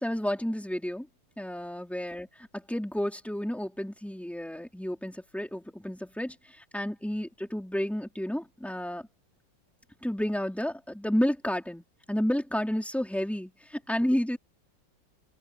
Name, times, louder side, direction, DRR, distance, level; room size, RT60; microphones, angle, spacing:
voice 1, 0.0-1.1 1.4-2.3 2.5-6.3 6.7-9.0 10.0-11.8 12.1-13.5 13.9-14.4, equal, ahead, 3.8 m, -31 dB
open air
omnidirectional pair, 2.3 m